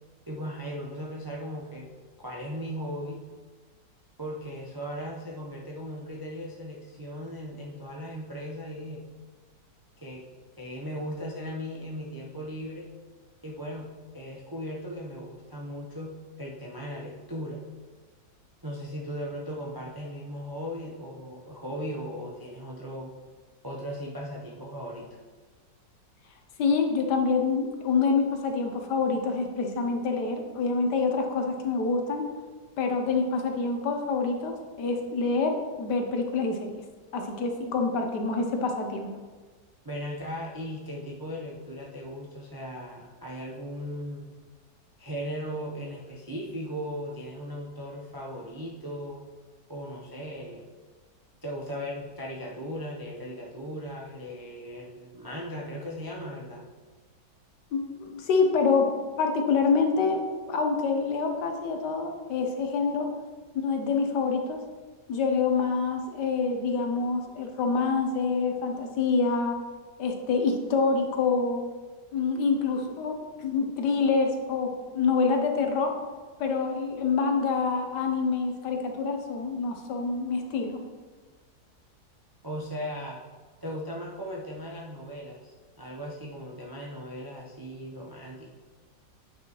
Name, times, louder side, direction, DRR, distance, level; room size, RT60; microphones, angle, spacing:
voice 1, 0.3-1.9 2.2-3.2 4.2-9.1 10.0-10.2 10.6-12.9 13.4-17.6 18.6-23.1 23.6-25.1 39.8-44.3 45.0-49.2 49.7-50.7 51.4-56.6 82.4-83.2 83.6-88.5, equal, 30° right, -4 dB, 0.4 m, -37 dB
voice 2, 26.6-32.2 32.8-36.7 37.1-39.1 57.7-58.9 59.2-63.1 63.5-64.6 65.1-69.6 70.0-71.6 72.1-75.9 76.4-80.8, left 4 dB, 70° left, 3 dB, 1.3 m, -26 dB
8.6 x 5.9 x 3.0 m, 1.4 s
omnidirectional pair, 2.0 m